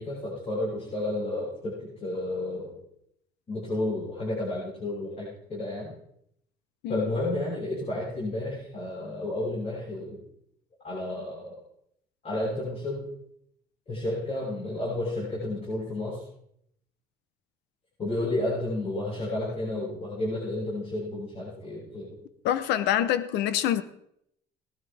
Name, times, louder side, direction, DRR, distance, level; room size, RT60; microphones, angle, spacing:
voice 1, 0.0-2.8 3.5-5.9 6.9-10.2 10.8-11.6 12.2-13.1 13.9-16.2 18.0-22.2, left 1 dB, 40° left, -7 dB, 7.0 m, -31 dB
voice 2, 22.4-23.8, left 11 dB, 85° left, 13 dB, 0.8 m, -25 dB
19.0 x 12.5 x 3.5 m, 0.74 s
cardioid pair, 110°, 17 cm